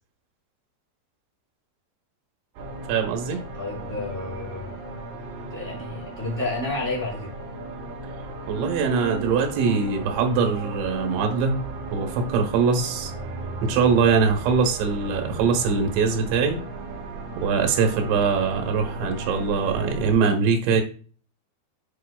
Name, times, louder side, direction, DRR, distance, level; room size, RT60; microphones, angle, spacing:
sound 1, 2.5-20.1, right 2 dB, 65° right, 3.2 m, -35 dB
voice 1, 2.9-3.4 8.5-11.6 11.9-13.1 13.6-16.6 17.4-20.8, right 5 dB, 85° right, 4 dB, 3.4 m, -22 dB
voice 2, 3.5-4.7 5.5-7.3 18.3-18.6, left 2 dB, 15° right, -6 dB, 3.1 m, -31 dB
9.3 x 4.8 x 2.3 m, 0.40 s
omnidirectional pair, 5.2 m